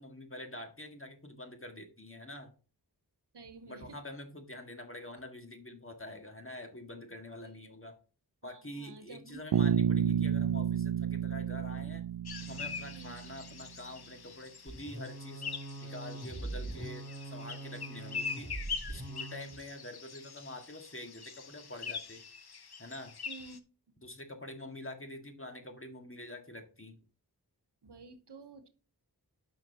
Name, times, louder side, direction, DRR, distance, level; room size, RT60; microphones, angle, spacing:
voice 1, 0.0-2.5 3.7-8.0 8.4-12.0 12.4-15.4 15.8-18.5 18.9-22.2 22.8-23.2 24.0-27.0, left 1 dB, 30° left, 4 dB, 1.8 m, -46 dB
voice 2, 3.3-4.0 7.4-7.6 8.4-9.4 12.9-13.2 23.3-23.6 23.9-24.1 27.8-28.7, right 3 dB, 85° right, 10 dB, 1.0 m, -51 dB
Bass guitar, 9.5-13.4, right 9 dB, 65° right, 0.5 m, -30 dB
sound 1, 12.3-23.6, left 5 dB, 70° left, 0.9 m, -43 dB
sound 2, 14.7-19.5, right 2 dB, 40° right, 4.8 m, -42 dB
10.0 x 5.9 x 2.9 m, 0.36 s
wide cardioid pair, 45°, 40 cm